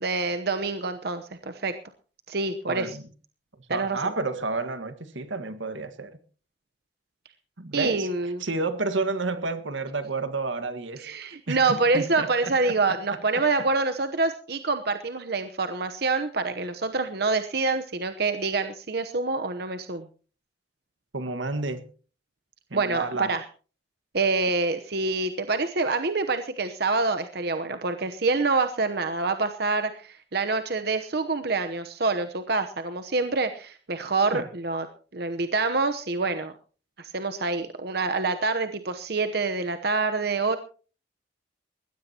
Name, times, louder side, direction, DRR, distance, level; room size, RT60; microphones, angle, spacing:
voice 1, 0.0-1.7 2.3-3.0 3.7-4.0 7.7-8.4 11.0-20.1 22.7-23.4 24.1-34.9 35.1-36.5 37.0-40.6, right 3 dB, 55° right, 0.9 m, -26 dB
voice 2, 2.6-3.0 3.7-6.2 7.6-8.1 8.4-13.0 21.1-21.9 22.7-23.4 34.3-34.5, right 3 dB, 80° right, 1.6 m, -31 dB
20.5 x 16.0 x 2.9 m
head